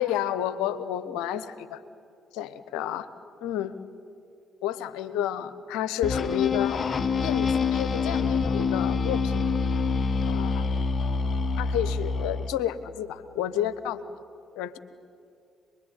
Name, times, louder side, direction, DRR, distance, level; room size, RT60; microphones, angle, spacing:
voice 1, 0.0-1.8 2.3-3.1 3.4-3.8 4.6-6.8 7.2-9.4 10.3-10.7 11.6-14.0 14.6-14.8, left 11 dB, 75° left, 13 dB, 1.1 m, -30 dB
sound 1, 6.0-12.6, left 4 dB, 45° left, 1.2 m, -26 dB
27.0 x 22.0 x 9.9 m, 2.4 s
hypercardioid pair, 45°, 0 cm